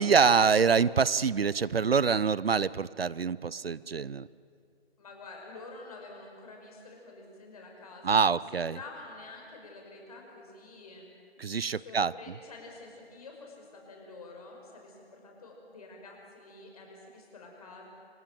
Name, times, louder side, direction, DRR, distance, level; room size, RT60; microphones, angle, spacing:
voice 1, 0.0-4.3 8.0-8.8 11.4-12.1, right 6 dB, 70° right, 20 dB, 0.6 m, -25 dB
voice 2, 5.0-11.1 11.7-17.8, left 3 dB, 35° left, 0 dB, 5.4 m, -48 dB
27.0 x 15.5 x 9.1 m, 2.5 s
figure-of-eight pair, 150°, 31 cm